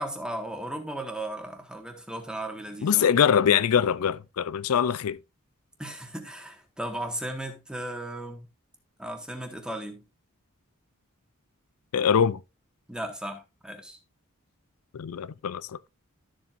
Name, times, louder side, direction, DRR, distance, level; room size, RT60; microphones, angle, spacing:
voice 1, 0.0-3.0 5.8-8.5 9.0-10.0 12.9-14.0, right 1 dB, 5° right, 1.6 m, -36 dB
voice 2, 2.8-5.2 11.9-12.4 14.9-15.8, left 8 dB, 80° left, 0.4 m, -23 dB
13.0 x 7.4 x 2.5 m
head